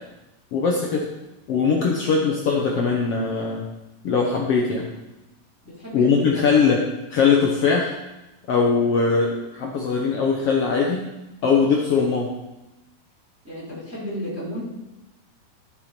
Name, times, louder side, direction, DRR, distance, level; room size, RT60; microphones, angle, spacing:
voice 1, 0.5-1.1 1.5-3.6 4.0-4.8 5.9-6.8 7.1-7.9 8.5-11.0 11.4-12.3, left 5 dB, 80° left, -1 dB, 1.3 m, -20 dB
voice 2, 5.6-6.5 13.4-14.6, equal, 5° right, -9 dB, 3.8 m, -33 dB
13.5 x 7.1 x 4.3 m, 0.97 s
omnidirectional pair, 4.2 m